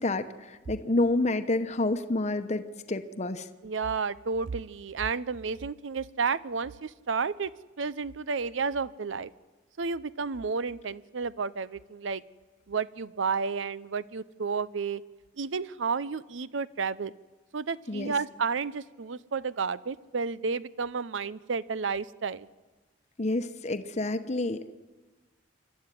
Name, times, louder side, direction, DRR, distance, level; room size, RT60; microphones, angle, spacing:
voice 1, 0.0-3.5 17.9-18.2 23.2-24.7, left 2 dB, 35° left, 8 dB, 1.0 m, -29 dB
voice 2, 3.6-7.5 7.8-9.3 9.8-12.2 12.7-15.0 15.4-17.1 17.5-22.5, right 5 dB, 80° right, 18 dB, 0.6 m, -31 dB
26.5 x 12.5 x 9.9 m, 1.2 s
head